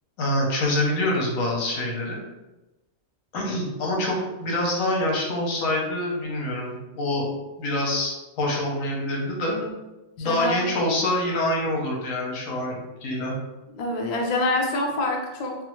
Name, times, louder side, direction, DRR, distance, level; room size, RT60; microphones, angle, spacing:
voice 1, 0.2-2.2 3.3-9.5 10.2-13.3, left 1 dB, 85° left, -1 dB, 1.1 m, -26 dB
voice 2, 10.2-10.6 13.7-15.6, left 2 dB, 60° left, 0 dB, 0.4 m, -26 dB
3.4 x 2.0 x 3.0 m, 1.0 s
omnidirectional pair, 1.4 m